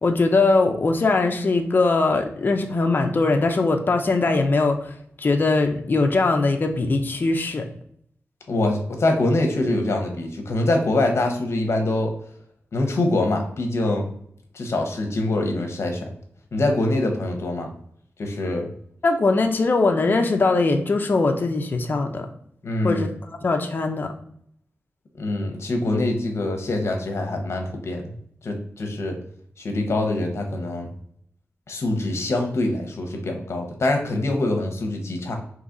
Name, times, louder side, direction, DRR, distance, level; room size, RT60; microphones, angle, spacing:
voice 1, 0.0-4.9 5.2-7.7 19.0-22.3 22.8-23.1 23.4-24.1, left 3 dB, 40° left, 4 dB, 0.5 m, -21 dB
voice 2, 8.5-12.1 12.7-14.1 14.5-16.1 16.5-17.7 18.2-18.7 22.6-23.1 25.2-28.1 28.4-29.2 29.6-30.9 31.7-35.4, left 2 dB, 65° left, 3 dB, 0.9 m, -24 dB
3.9 x 3.0 x 3.8 m, 0.66 s
wide cardioid pair, 125°, 5 cm